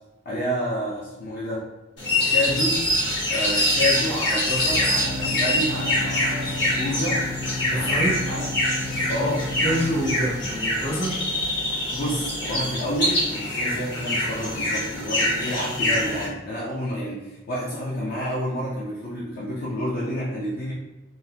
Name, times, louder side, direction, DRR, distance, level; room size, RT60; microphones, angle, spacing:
voice 1, 0.3-1.6 2.3-2.8 3.3-7.2 7.7-8.5 9.1-9.5 11.9-20.7, equal, 55° left, -6 dB, 0.5 m, -29 dB
sound 1, 2.0-16.2, left 1 dB, 70° left, 1.5 m, -25 dB
Organ, 2.8-13.2, left 2 dB, ahead, 0.5 m, -34 dB
voice 2, 7.7-8.2 9.6-11.2, equal, 35° left, -5 dB, 1.0 m, -26 dB
3.7 x 2.2 x 2.7 m, 1.1 s
head